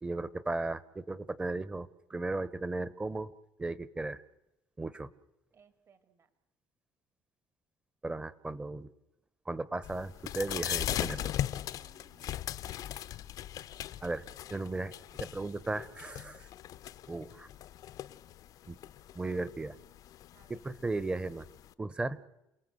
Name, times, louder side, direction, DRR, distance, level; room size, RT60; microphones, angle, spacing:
voice 1, 0.0-3.3 3.6-4.2 4.8-5.1 8.0-8.9 9.5-11.3 14.0-14.2 14.5-14.9 15.2-16.5 17.1-17.5 18.7-18.8 19.1-19.8 20.5-21.5 21.8-22.2, right 2 dB, 15° right, 17 dB, 1.1 m, -36 dB
voice 2, 5.5-6.3 11.7-12.4 20.3-20.6, right 7 dB, 45° right, 10 dB, 2.4 m, -65 dB
sound 1, 9.8-21.7, left 12 dB, 60° left, 0.8 m, -39 dB
29.0 x 18.0 x 7.9 m, 0.93 s
cardioid pair, 105°, 7 cm